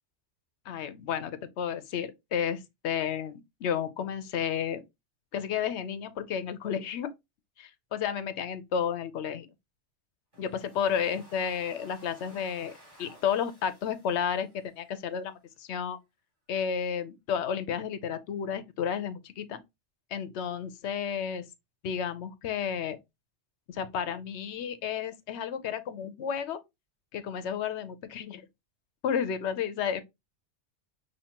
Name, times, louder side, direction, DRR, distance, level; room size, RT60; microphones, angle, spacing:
voice 1, 0.7-4.8 5.3-7.1 7.6-9.5 10.4-12.7 13.0-16.0 16.5-19.6 20.1-21.5 21.8-23.0 23.7-26.6 27.1-28.4 29.0-30.0, left 8 dB, 70° left, 0.9 m, -32 dB
Domestic sounds home sounds, 10.3-15.3, equal, 40° right, 3.0 m, -56 dB
5.7 x 2.8 x 2.8 m
omnidirectional pair, 1.2 m